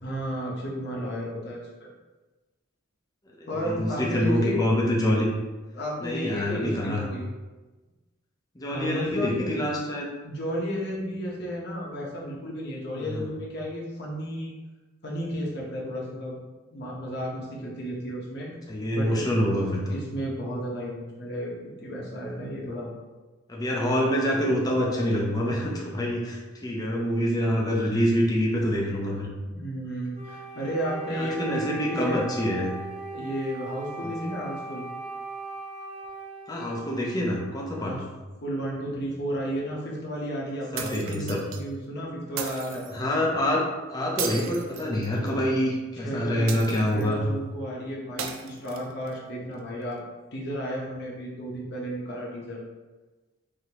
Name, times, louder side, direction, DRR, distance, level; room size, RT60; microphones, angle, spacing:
voice 1, 0.0-1.7 3.5-4.6 5.7-7.3 8.7-9.5 10.2-14.5 15.0-16.4 16.7-18.5 18.9-19.2 19.9-21.5 21.8-22.9 29.4-32.3 33.1-34.9 37.8-38.0 38.4-42.8 45.9-46.6 46.9-50.0 50.3-52.6, equal, 55° left, -4 dB, 1.0 m, -33 dB
voice 2, 3.4-5.3 6.0-7.1 8.6-10.1 13.0-13.2 18.7-20.0 23.5-29.3 31.1-32.7 34.0-34.4 36.5-38.0 40.7-41.4 42.9-43.6 43.9-47.2, equal, 20° left, -2 dB, 0.6 m, -26 dB
Wind instrument woodwind instrument, 30.1-37.9, right 3 dB, 30° right, 0.6 m, -39 dB
sound 1, 40.8-41.6 42.4-42.9 44.2-45.4 46.5-47.1 48.2-49.1, right 7 dB, 80° right, 0.5 m, -35 dB
4.9 x 2.8 x 2.9 m, 1.2 s
head